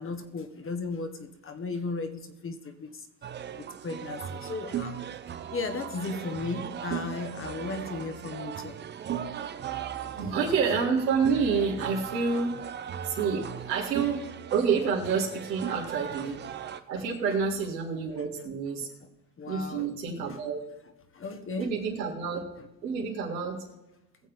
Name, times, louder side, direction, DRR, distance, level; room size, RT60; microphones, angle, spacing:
voice 1, 0.0-3.1 3.5-5.0 5.5-8.8 10.0-10.1 12.3-12.4 15.7-15.8 17.0-17.1 18.8-18.9 19.4-20.4 21.1-21.7, left 3 dB, 25° left, 7 dB, 1.5 m, -36 dB
sound 1, 3.2-16.8, right 9 dB, 20° right, 0.6 m, -37 dB
voice 2, 10.1-12.6 13.0-14.3 14.5-16.4 16.9-18.9 19.5-20.6 21.6-22.4 22.8-23.7, right 5 dB, 80° right, -1 dB, 3.2 m, -28 dB
21.0 x 7.4 x 3.7 m, 0.96 s
hypercardioid pair, 85°, 50 cm